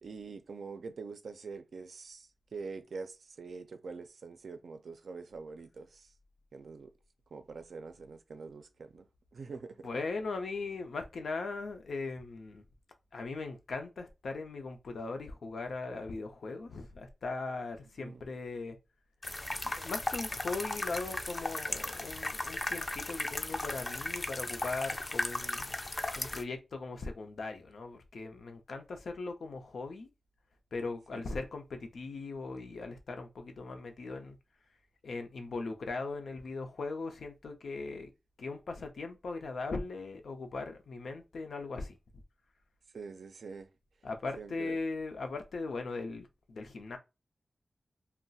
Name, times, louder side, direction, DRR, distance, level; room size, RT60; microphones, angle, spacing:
voice 1, 0.0-6.1 6.5-6.9 7.3-9.9 18.0-18.3 31.1-31.3 42.9-43.7 44.4-44.8, right 4 dB, 85° right, 0.4 m, -45 dB
voice 2, 9.8-12.6 13.1-18.8 19.6-25.8 26.2-30.1 30.7-34.4 35.0-38.1 38.4-42.0 44.0-47.0, left 3 dB, 90° left, 0.5 m, -39 dB
sound 1, 19.2-26.4, left 2 dB, 30° left, 0.3 m, -36 dB
2.3 x 2.1 x 3.9 m
wide cardioid pair, 130°, 0 cm